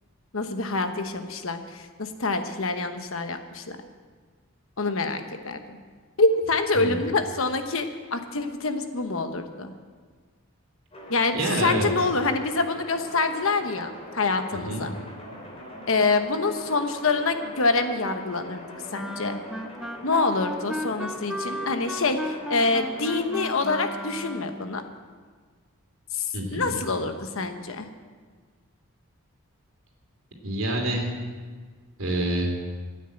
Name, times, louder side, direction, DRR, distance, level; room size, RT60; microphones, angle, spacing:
voice 1, 0.3-3.8 4.8-5.8 6.2-9.7 11.1-14.9 15.9-18.6 18.9-19.4 20.0-24.8 26.1-27.9, left 3 dB, 65° left, 7 dB, 1.1 m, -26 dB
sound 1, 10.9-24.6, equal, 30° left, 3.2 m, -43 dB
voice 2, 11.3-11.9 14.7-14.8 26.3-26.7 30.4-31.1 32.0-32.5, right 1 dB, 65° right, 1 dB, 2.9 m, -27 dB
Wind instrument woodwind instrument, 18.9-24.7, equal, ahead, 0.5 m, -35 dB
13.5 x 9.2 x 7.8 m, 1.5 s
head